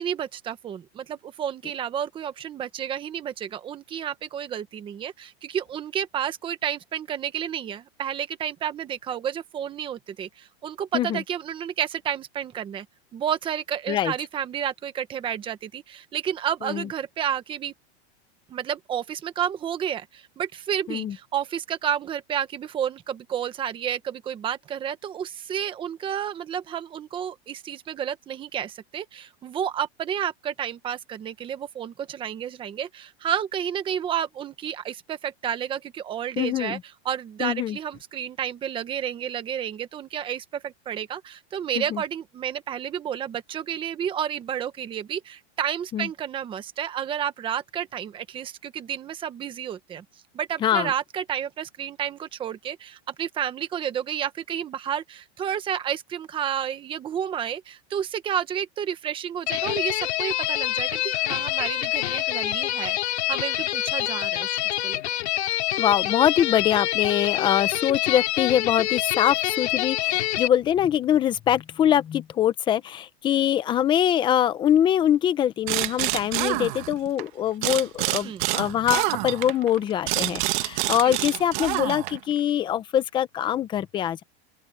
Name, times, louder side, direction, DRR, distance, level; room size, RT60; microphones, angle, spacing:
voice 1, 0.0-12.8 13.1-17.7 18.5-36.8 37.0-50.0 50.3-65.0 78.2-78.5 80.9-81.2, right 9 dB, 15° right, 1.2 m, -31 dB
voice 2, 36.4-36.8 37.4-37.8 41.8-42.0 45.9-46.1 50.6-50.9 65.8-84.2, left 10 dB, 15° left, 0.7 m, -23 dB
sound 1, 59.5-70.5, left 15 dB, 90° left, 2.9 m, -26 dB
sound 2, 75.7-77.2 77.6-82.3, right 19 dB, 50° right, 1.5 m, -27 dB
open air
supercardioid pair, 170°, 32 cm